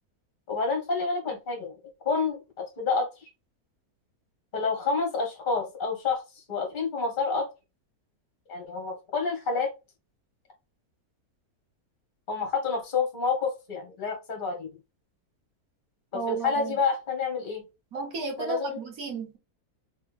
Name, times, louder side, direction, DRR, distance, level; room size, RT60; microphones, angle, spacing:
voice 1, 0.5-1.8 2.0-2.4 2.8-3.3 4.5-7.5 8.5-9.7 12.3-14.7 16.1-17.6 18.4-18.8, left 4 dB, 35° left, 1.2 m, -28 dB
voice 2, 16.1-16.8 17.9-19.4, right 5 dB, 65° right, 1.6 m, -33 dB
3.4 x 3.0 x 3.5 m
omnidirectional pair, 1.7 m